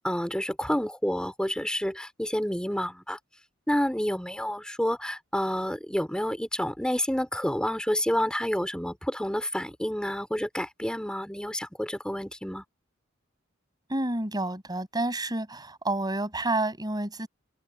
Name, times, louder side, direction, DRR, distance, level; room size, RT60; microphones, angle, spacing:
voice 1, 0.0-3.2 3.7-12.6, equal, 5° left, 3.8 m, -29 dB
voice 2, 13.9-17.3, right 2 dB, 20° right, 6.8 m, -29 dB
head